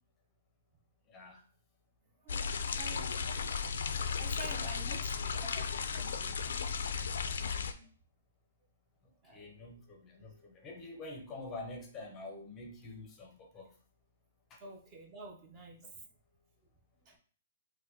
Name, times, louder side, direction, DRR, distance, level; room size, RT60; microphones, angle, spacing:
voice 1, 1.1-1.4 9.2-13.7 14.5-14.6 15.8-15.9, left 2 dB, 20° left, 2 dB, 0.6 m, -47 dB
voice 2, 2.2-3.2 4.2-7.9 9.2-9.7 14.6-15.9 17.0-17.2, right 3 dB, 25° right, 1 dB, 0.6 m, -51 dB
sound 1, 2.3-7.7, left 6 dB, 80° left, 0.4 m, -35 dB
4.3 x 2.1 x 2.7 m, 0.43 s
hypercardioid pair, 155°, 0 cm